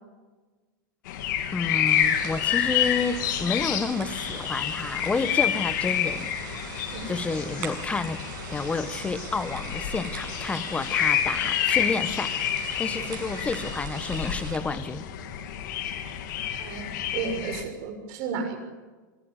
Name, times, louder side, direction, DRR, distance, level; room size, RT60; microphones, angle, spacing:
sound 1, 1.1-17.6, left 10 dB, 65° left, 3.1 m, -29 dB
voice 1, 1.5-6.7 7.1-8.2 8.5-12.3 12.6-15.0, left 4 dB, 10° left, 13 dB, 1.3 m, -30 dB
sound 2, 1.9-14.6, right 7 dB, 65° right, 7.1 m, -41 dB
voice 2, 16.6-18.6, right 5 dB, 50° right, 5 dB, 6.3 m, -33 dB
23.5 x 17.5 x 9.9 m, 1.3 s
supercardioid pair, 135°, 11 cm